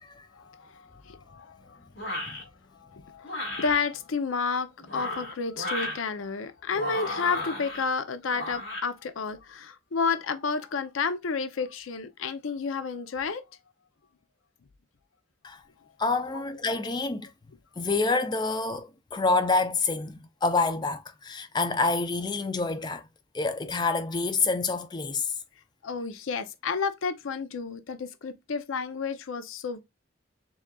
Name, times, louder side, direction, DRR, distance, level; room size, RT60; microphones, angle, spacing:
voice 1, 0.3-1.8 2.4-2.5 2.8-13.4 16.3-16.4 25.8-29.8, left 5 dB, 85° left, 0.5 m, -31 dB
sound 1, 2.0-2.4 3.2-3.8 4.8-6.0 6.7-7.8 8.3-8.8, left 1 dB, 60° left, 1.9 m, -34 dB
voice 2, 16.0-17.3 17.8-23.0 23.3-25.3, left 3 dB, 20° left, 0.4 m, -27 dB
7.0 x 2.4 x 2.3 m
head